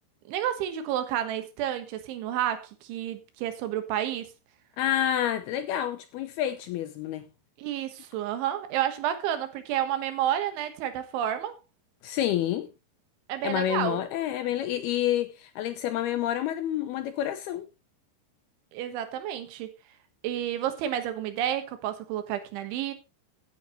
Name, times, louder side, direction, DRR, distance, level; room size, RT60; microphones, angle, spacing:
voice 1, 0.3-4.3 7.6-11.6 13.3-14.0 18.7-19.8 20.2-22.9, right 11 dB, 90° right, 3.9 m, -30 dB
voice 2, 4.8-7.3 12.0-12.7 13.4-17.7, left 11 dB, 75° left, 2.4 m, -28 dB
15.5 x 8.8 x 3.1 m
omnidirectional pair, 5.2 m